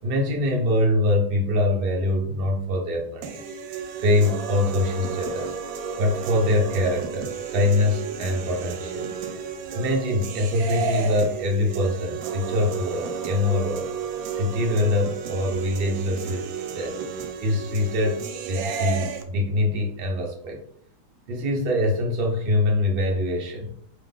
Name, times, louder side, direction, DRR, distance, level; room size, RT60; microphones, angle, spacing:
voice 1, 0.0-3.4 4.0-5.5 6.0-9.1 9.7-13.9 14.3-17.0 17.4-20.6 21.3-23.8, left 2 dB, 55° right, 1 dB, 0.6 m, -24 dB
sound 1, 3.2-19.2, right 6 dB, 75° right, 1.3 m, -32 dB
3.9 x 3.0 x 3.5 m, 0.64 s
omnidirectional pair, 2.2 m